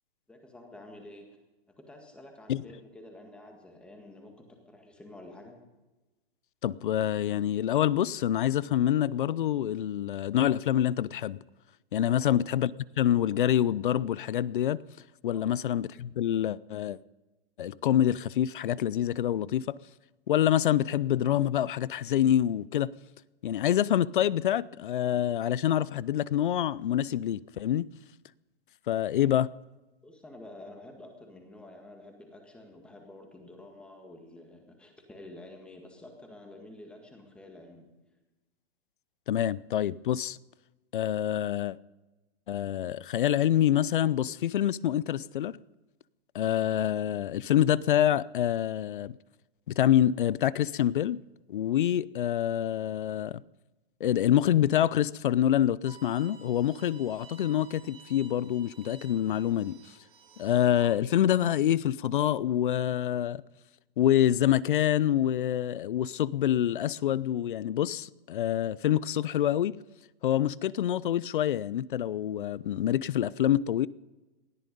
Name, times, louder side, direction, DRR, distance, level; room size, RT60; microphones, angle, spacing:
voice 1, 0.3-1.3 1.7-5.6 12.0-12.3 15.3-15.6 30.0-37.9, left 1 dB, 5° left, 1.7 m, -49 dB
voice 2, 6.6-11.4 11.9-12.7 13.0-14.8 15.2-17.0 17.6-19.8 20.3-22.9 23.4-27.9 28.9-29.5 39.3-40.4 40.9-41.8 42.5-45.6 46.3-49.1 49.7-51.2 51.5-53.4 54.0-59.8 60.4-63.4 64.0-69.8 70.2-73.9, left 11 dB, 55° left, 0.5 m, -26 dB
Bowed string instrument, 55.9-60.9, right 5 dB, 15° right, 1.8 m, -54 dB
19.5 x 13.5 x 5.3 m
hypercardioid pair, 170°, 30 cm